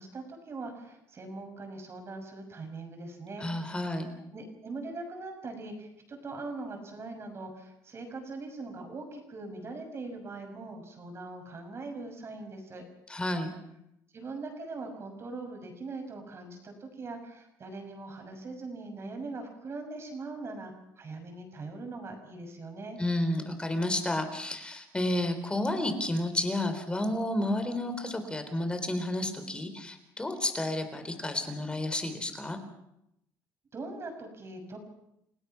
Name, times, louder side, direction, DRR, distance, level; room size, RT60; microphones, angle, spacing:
voice 1, 0.0-3.5 4.3-12.8 14.1-23.0 33.7-34.8, right 3 dB, 35° right, 4 dB, 6.3 m, -41 dB
voice 2, 3.4-4.1 13.1-13.5 23.0-32.6, left 1 dB, 15° left, 8 dB, 3.7 m, -31 dB
29.5 x 17.0 x 6.0 m, 0.81 s
cardioid pair, 110°, 7 cm